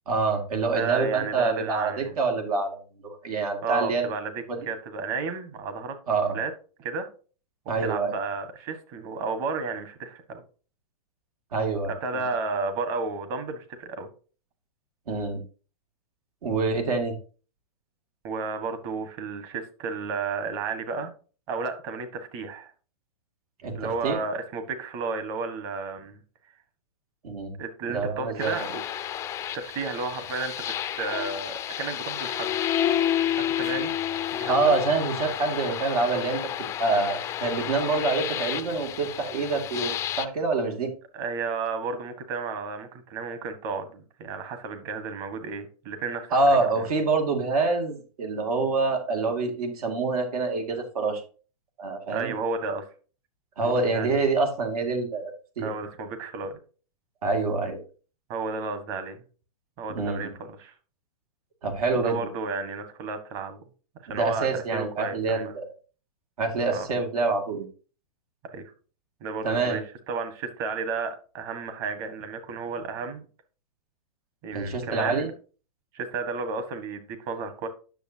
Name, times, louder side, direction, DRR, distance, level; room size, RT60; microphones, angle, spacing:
voice 1, 0.1-4.1 4.5-4.6 6.1-6.4 7.7-8.1 11.5-11.9 15.1-15.4 16.4-17.2 23.6-24.2 27.2-27.5 27.9-28.6 34.5-36.4 36.8-40.9 46.3-51.2 51.8-52.4 53.6-55.7 57.2-57.8 59.9-60.3 61.6-62.2 64.1-65.7 66.4-67.7 69.4-69.8 74.5-75.3, right 3 dB, 80° right, 3 dB, 2.6 m, -26 dB
voice 2, 0.7-2.1 3.6-6.0 6.3-6.5 6.8-7.1 7.8-10.4 11.9-14.1 18.2-21.1 21.5-22.7 23.7-26.2 27.6-28.8 29.5-32.6 33.4-33.9 34.3-34.7 41.1-46.9 52.1-52.9 53.6-54.2 55.6-56.6 58.3-59.2 59.8-60.7 61.9-63.6 64.0-65.5 66.7-66.9 68.4-68.7 69.2-73.2 74.4-75.3 75.9-77.7, right 4 dB, 40° right, 8 dB, 1.7 m, -32 dB
sound 1, 28.4-40.3, left 11 dB, 15° left, 0.4 m, -30 dB
10.0 x 6.7 x 2.9 m, 0.37 s
hypercardioid pair, 150°, 19 cm